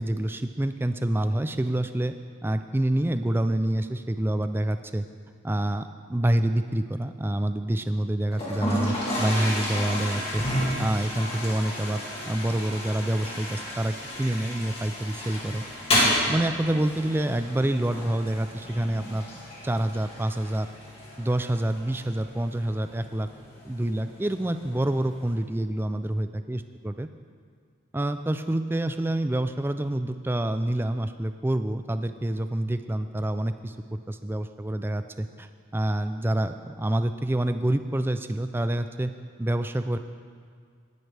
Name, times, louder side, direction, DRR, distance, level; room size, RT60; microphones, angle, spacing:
voice 1, 0.0-2.1 2.4-5.0 5.4-10.4 10.8-15.7 16.3-19.3 19.6-20.7 21.2-23.3 23.6-27.1 27.9-39.1 39.4-40.0, right 1 dB, 10° right, 9 dB, 0.3 m, -27 dB
Toilet flush, 8.3-25.3, equal, 30° left, 2.4 m, -32 dB
18.0 x 10.5 x 3.4 m, 2.1 s
head